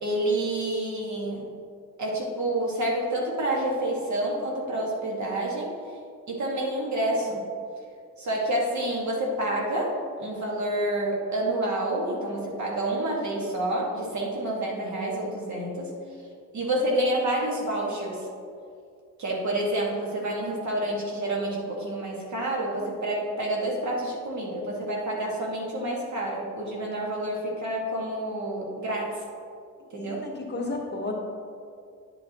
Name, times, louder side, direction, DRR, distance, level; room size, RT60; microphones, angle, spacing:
voice 1, 0.0-1.5 2.0-5.7 6.3-7.4 8.2-15.9 16.5-18.3 19.2-29.1 29.9-30.2, right 1 dB, 60° right, -2 dB, 1.8 m, -28 dB
voice 2, 30.0-31.1, left 2 dB, 30° left, -1 dB, 1.2 m, -33 dB
9.9 x 8.1 x 3.0 m, 2.3 s
cardioid pair, 130°, 33 cm